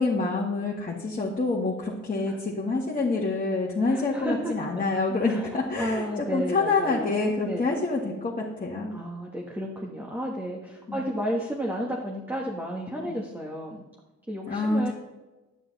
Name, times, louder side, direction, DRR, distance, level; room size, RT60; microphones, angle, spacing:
voice 1, 0.0-8.9 10.9-11.0 14.5-14.9, left 3 dB, 30° left, -3 dB, 1.8 m, -27 dB
voice 2, 3.9-4.5 5.1-7.6 8.9-13.8 14.3-14.9, equal, 5° right, -2 dB, 1.6 m, -32 dB
10.5 x 9.2 x 4.1 m, 1.1 s
cardioid pair, 90°, 30 cm